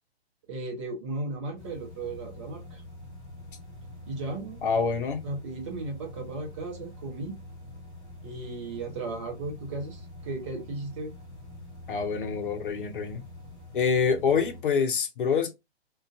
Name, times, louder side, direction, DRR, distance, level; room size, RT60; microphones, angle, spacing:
voice 1, 0.5-2.8 4.1-4.7 5.2-7.4 8.2-11.1, right 2 dB, 30° right, 0.7 m, -35 dB
sound 1, 1.6-14.6, left 1 dB, 5° left, 0.3 m, -46 dB
voice 2, 4.6-5.2 11.9-13.2 13.7-15.5, left 5 dB, 50° left, 0.7 m, -26 dB
2.4 x 2.2 x 2.4 m
figure-of-eight pair, 125°, 33 cm